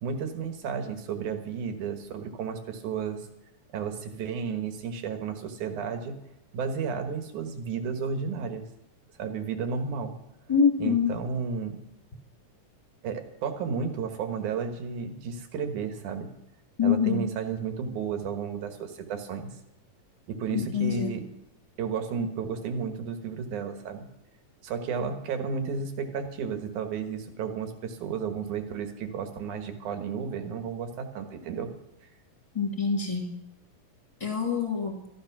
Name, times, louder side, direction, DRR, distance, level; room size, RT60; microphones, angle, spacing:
voice 1, 0.0-3.3 3.7-6.2 6.5-8.7 9.2-10.1 10.8-11.8 13.0-16.3 16.8-19.5 20.3-21.3 21.8-24.1 24.6-31.7, right 6 dB, 70° right, 7 dB, 2.9 m, -32 dB
voice 2, 10.5-11.1 16.8-17.3 20.5-21.2 32.5-33.3 34.2-34.9, left 6 dB, 10° left, 1 dB, 2.2 m, -25 dB
13.0 x 12.5 x 6.0 m, 0.86 s
omnidirectional pair, 3.7 m